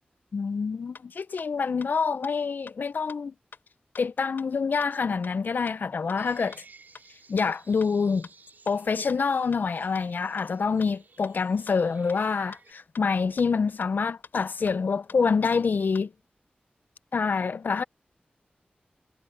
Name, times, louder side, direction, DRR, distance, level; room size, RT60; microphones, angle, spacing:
voice 1, 0.3-3.3 4.0-6.6 7.3-8.3 8.7-16.1 17.1-17.8, left 5 dB, 70° left, 0.5 m, -26 dB
sound 1, 0.9-1.0 1.4-1.5 1.8-1.9 2.2-2.3 2.7-2.8 3.1-3.2 3.5-3.6 3.9-4.0 4.4-4.5 4.8-4.9 5.2-5.3 5.7-5.8 6.1-6.2 6.5-6.6 6.9-7.0 7.4-7.5 7.8-7.9 8.2-8.3 8.7-8.8 9.1-9.2 9.5-9.6 9.9-10.0 10.4-10.5 10.8-10.9 11.2-11.3 11.7-11.8 12.1-12.2 12.5-12.6 12.9-13.0 13.4-13.5 13.8-13.9 14.2-14.3 14.7-14.8 15.1-15.2 15.5-15.6 15.9-16.0, left 5 dB, 85° left, 4.9 m, -46 dB
sound 2, 6.2-12.7, right 4 dB, 65° right, 5.1 m, -55 dB
wide cardioid pair, 105°, 3 cm